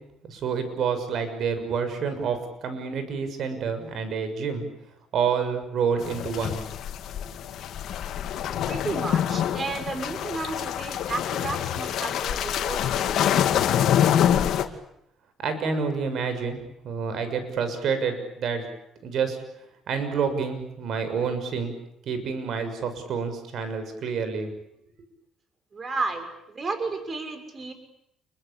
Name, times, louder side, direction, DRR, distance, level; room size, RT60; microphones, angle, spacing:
voice 1, 0.3-2.4 2.6-4.6 5.1-6.6 15.4-16.6 16.8-18.6 19.0-19.4 19.9-21.7 22.1-24.5, right 6 dB, 65° right, 9 dB, 6.6 m, -28 dB
sound 1, 6.0-14.6, left 10 dB, 70° left, 2.4 m, -26 dB
voice 2, 8.7-13.7 25.7-27.7, right 3 dB, 35° right, 8 dB, 6.1 m, -33 dB
29.0 x 24.0 x 8.7 m, 0.78 s
cardioid pair, 85°, 0 cm